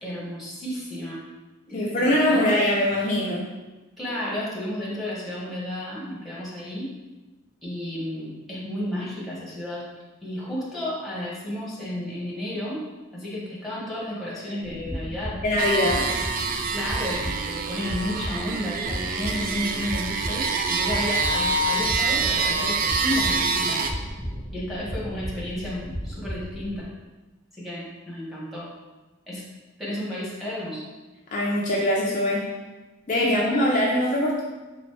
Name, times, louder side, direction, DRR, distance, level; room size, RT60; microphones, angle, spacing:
voice 1, 0.0-1.2 1.7-2.4 4.0-6.9 7.6-9.9 10.2-12.8 13.1-15.4 16.7-23.8 24.5-26.9 27.5-28.7 29.3-29.4 29.8-30.8 33.2-33.5, left 1 dB, ahead, -7 dB, 1.2 m, -32 dB
voice 2, 1.7-3.4 15.4-16.1 31.3-32.5 33.1-34.4, left 1 dB, 35° left, -4 dB, 0.5 m, -22 dB
sound 1, 14.6-26.8, equal, 15° right, 1.4 m, -35 dB
sound 2, 15.6-23.9, right 4 dB, 40° right, 0.3 m, -26 dB
4.1 x 3.8 x 3.2 m, 1.2 s
head